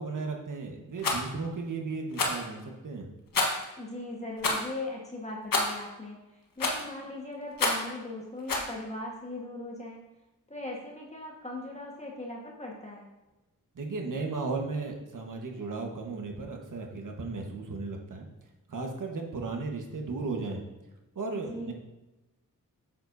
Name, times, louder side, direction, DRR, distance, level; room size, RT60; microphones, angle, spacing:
voice 1, 0.0-3.1 13.7-18.3 18.7-20.6 21.1-21.7, right 3 dB, 65° right, 2 dB, 1.4 m, -35 dB
Rattle, 1.0-1.2 2.1-2.4 3.3-3.7 4.4-4.7 5.5-5.8 6.6-6.9 7.6-7.9 8.5-8.7, left 3 dB, 75° left, 1.4 m, -28 dB
voice 2, 3.8-10.1 10.5-13.1 21.3-21.7, left 2 dB, 20° left, -2 dB, 1.4 m, -39 dB
9.0 x 7.3 x 2.7 m, 1.0 s
wide cardioid pair, 80°, 34 cm